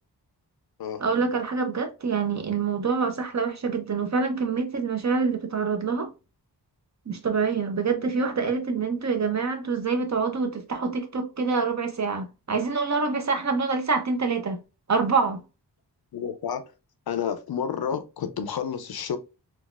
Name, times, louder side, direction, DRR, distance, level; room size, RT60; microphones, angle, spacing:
voice 1, 1.0-6.1 7.1-14.6 14.9-15.4, right 5 dB, 45° right, 0.6 m, -26 dB
voice 2, 16.1-16.6 17.1-19.2, left 7 dB, 65° left, 0.5 m, -30 dB
3.9 x 2.3 x 2.3 m
wide cardioid pair, 80°, 41 cm